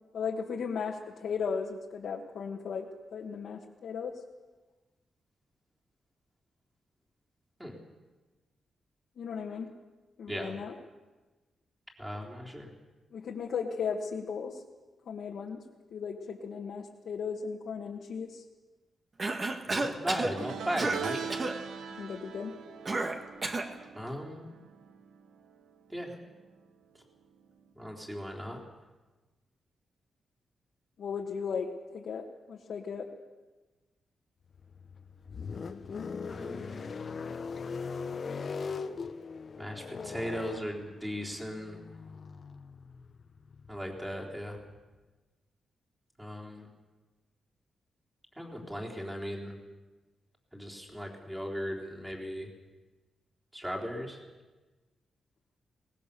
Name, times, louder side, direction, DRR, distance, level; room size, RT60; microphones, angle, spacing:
voice 1, 0.1-4.2 9.2-9.7 10.2-10.7 13.1-14.6 15.0-15.6 15.9-18.4 22.0-22.5 31.0-33.1, left 6 dB, 70° left, -1 dB, 1.7 m, -36 dB
voice 2, 12.0-12.7 19.6-21.2 23.9-24.5 25.9-26.2 27.8-28.6 36.3-36.9 39.6-41.8 43.7-44.6 46.2-46.7 48.4-49.6 50.5-52.5 53.5-54.2, equal, 10° right, -1 dB, 3.8 m, -37 dB
Cough, 19.2-20.3 20.8-21.0 21.3-21.6 22.9-23.7, right 2 dB, 30° right, 1.8 m, -31 dB
sound 1, 20.4-25.8 26.0-26.4 27.6-27.7, right 6 dB, 90° right, 1.3 m, -41 dB
sound 2, 34.5-44.8, left 5 dB, 45° left, 1.0 m, -40 dB
23.0 x 19.5 x 6.9 m, 1.2 s
wide cardioid pair, 130°, 0 cm